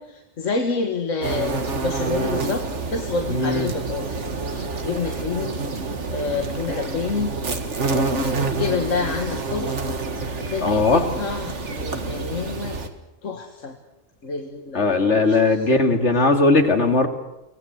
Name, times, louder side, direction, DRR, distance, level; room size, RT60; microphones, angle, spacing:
voice 1, 0.0-2.6 2.9-5.6 6.1-7.3 7.8-9.9 10.5-12.8 13.2-13.8 14.2-15.7, left 4 dB, 75° left, 3 dB, 2.1 m, -28 dB
sound 1, 1.2-12.9, right 3 dB, 65° right, 2.1 m, -28 dB
voice 2, 3.3-3.7 10.6-11.0 14.7-17.1, left 3 dB, 60° left, 5 dB, 2.7 m, -18 dB
24.5 x 19.0 x 8.0 m, 0.94 s
omnidirectional pair, 1.3 m